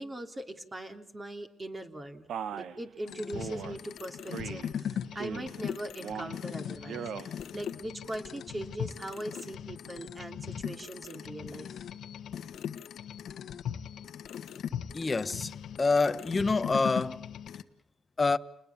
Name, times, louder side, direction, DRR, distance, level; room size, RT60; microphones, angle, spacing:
voice 1, 0.0-11.8, right 1 dB, 20° right, 3.3 m, -41 dB
Male speech man speaking, 2.3-2.8 3.4-3.8 4.3-4.7 5.1-5.6 6.0-6.4 6.8-7.3, right 8 dB, 70° right, 1.3 m, -38 dB
sound 1, 3.1-17.6, left 9 dB, 70° left, 1.4 m, -39 dB
voice 2, 14.9-15.5 15.8-17.2 18.2-18.4, left 3 dB, 25° left, 1.1 m, -26 dB
29.5 x 20.5 x 7.3 m
cardioid pair, 90°, 0 cm